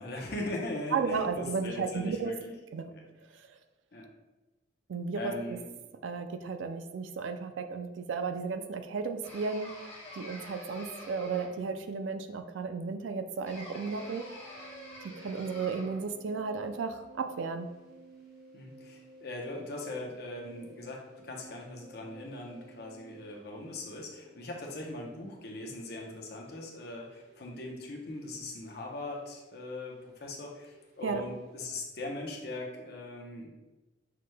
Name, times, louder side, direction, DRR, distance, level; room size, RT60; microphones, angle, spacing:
voice 1, 0.0-2.5 2.9-3.0 3.9-4.1 5.1-5.7 18.5-33.5, left 2 dB, 55° left, 0 dB, 0.8 m, -40 dB
voice 2, 0.9-2.3 2.7-2.9 3.5-3.6 4.9-5.3 6.0-9.7 10.1-14.2 15.2-17.7 31.0-31.2, right 5 dB, 80° right, 8 dB, 0.4 m, -34 dB
sound 1, 9.2-11.8 13.4-16.1, left 1 dB, 30° left, 1.0 m, -47 dB
sound 2, 13.5-31.7, right 2 dB, 55° right, 1.2 m, -56 dB
5.9 x 3.2 x 2.2 m, 1.1 s
head